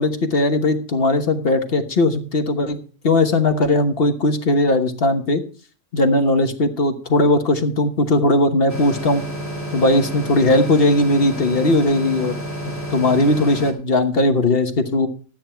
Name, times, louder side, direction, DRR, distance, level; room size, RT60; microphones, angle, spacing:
voice 1, 0.0-2.8 3.0-5.4 5.9-9.2 9.7-12.4 12.9-15.1, left 2 dB, 45° left, 6 dB, 1.3 m, -18 dB
sound 1, 8.7-13.7, right 1 dB, 10° left, 2.3 m, -29 dB
13.0 x 9.1 x 4.4 m, 0.39 s
omnidirectional pair, 1.5 m